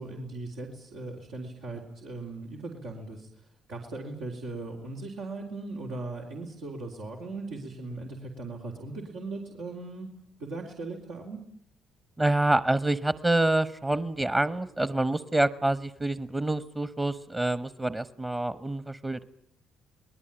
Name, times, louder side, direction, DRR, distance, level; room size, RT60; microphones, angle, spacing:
voice 1, 0.0-3.3 3.7-10.1 10.4-11.4, right 2 dB, 85° right, -2 dB, 3.6 m, -38 dB
voice 2, 12.2-19.2, right 2 dB, 25° right, 14 dB, 1.1 m, -27 dB
27.0 x 20.0 x 8.9 m, 0.68 s
supercardioid pair, 65°, 0 cm